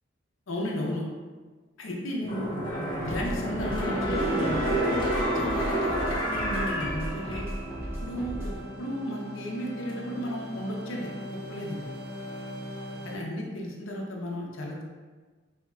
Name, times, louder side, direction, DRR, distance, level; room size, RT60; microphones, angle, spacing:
voice 1, 0.5-1.0 1.8-2.6 3.0-4.6 5.3-7.5 8.0-11.8 13.0-14.8, equal, 75° left, -2 dB, 0.6 m, -34 dB
sound 1, 2.2-7.8 8.2-8.3, equal, 25° left, 0.6 m, -29 dB
sound 2, 3.0-8.6, equal, 10° right, 0.7 m, -37 dB
sound 3, 4.1-13.2, right 2 dB, 50° right, 0.5 m, -37 dB
4.3 x 2.8 x 2.4 m, 1.4 s
head